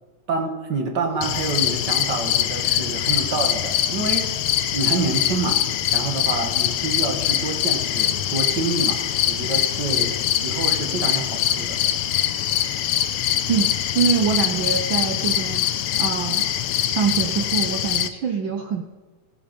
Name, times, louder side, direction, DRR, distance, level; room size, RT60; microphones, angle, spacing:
voice 1, 0.3-4.3 4.7-5.6 5.9-9.0 9.3-10.1 10.4-11.8, right 4 dB, 40° right, 3 dB, 2.1 m, -27 dB
sound 1, 1.2-18.1, left 11 dB, 85° left, 1.2 m, -23 dB
voice 2, 13.5-15.7 16.0-16.4 16.8-18.8, right 7 dB, 85° right, 5 dB, 1.0 m, -24 dB
16.5 x 12.5 x 5.3 m, 1.3 s
omnidirectional pair, 3.5 m